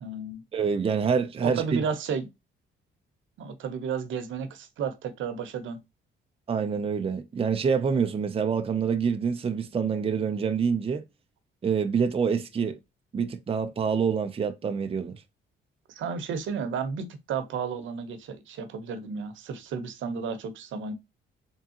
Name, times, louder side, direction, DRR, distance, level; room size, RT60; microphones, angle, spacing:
voice 1, 0.0-0.4 1.4-2.3 3.4-5.8 15.9-20.9, right 6 dB, 75° right, 1.0 m, -32 dB
voice 2, 0.5-1.8 6.5-11.0 11.6-12.8 13.1-15.2, right 6 dB, 30° right, 0.6 m, -26 dB
3.6 x 3.6 x 2.8 m
cardioid pair, 90°, 20 cm